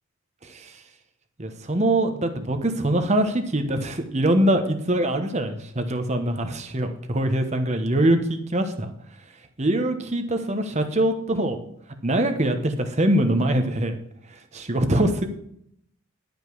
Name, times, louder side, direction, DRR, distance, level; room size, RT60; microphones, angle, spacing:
voice 1, 0.4-0.8 1.4-8.9 9.6-11.6 12.0-14.0 14.3-15.3, right 1 dB, 30° right, 6 dB, 1.1 m, -23 dB
11.5 x 5.3 x 6.2 m, 0.70 s
head